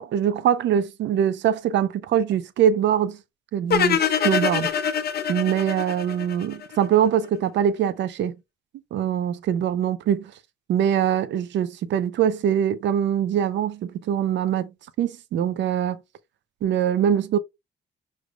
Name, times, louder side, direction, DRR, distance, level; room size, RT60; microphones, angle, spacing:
voice 1, 0.0-3.2 3.5-4.7 5.3-8.4 8.9-10.3 10.7-14.7 15.0-16.0 16.6-17.4, right 9 dB, 80° right, 0.6 m, -23 dB
sound 1, 3.7-6.8, left 7 dB, 60° left, 0.9 m, -24 dB
6.2 x 3.2 x 2.3 m
cardioid pair, 85°, 19 cm